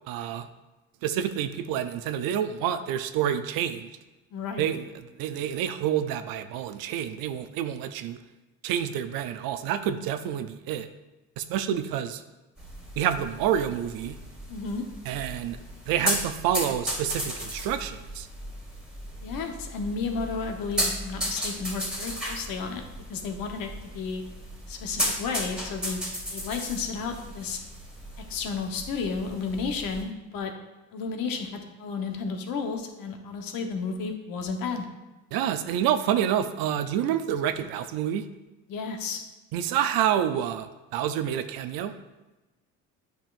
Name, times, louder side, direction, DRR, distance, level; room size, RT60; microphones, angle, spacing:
voice 1, 0.1-0.5 1.0-3.9 4.6-4.9 5.2-8.2 8.6-10.9 11.4-12.2 13.0-14.2 15.1-15.6 15.9-18.3 35.3-38.3 39.5-41.9, right 10 dB, 70° right, 10 dB, 0.6 m, -28 dB
voice 2, 4.3-4.6 14.5-14.8 19.2-24.2 24.7-26.0 26.3-27.6 28.3-30.5 30.9-34.8 38.7-39.2, left 5 dB, 65° left, 4 dB, 1.1 m, -32 dB
sound 1, 12.6-30.0, equal, ahead, 2.2 m, -35 dB
9.1 x 5.4 x 2.5 m, 1.1 s
supercardioid pair, 85°, 37 cm